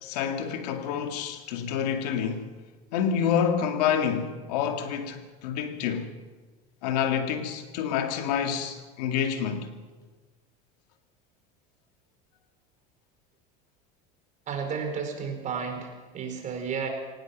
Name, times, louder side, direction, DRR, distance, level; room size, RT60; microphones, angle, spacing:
voice 1, 0.0-2.5 2.9-6.1 6.8-9.7, left 8 dB, 90° left, 2.2 m, -28 dB
voice 2, 14.5-16.9, right 6 dB, 40° right, 4.8 m, -32 dB
23.5 x 18.5 x 6.2 m
supercardioid pair, 130°, 20 cm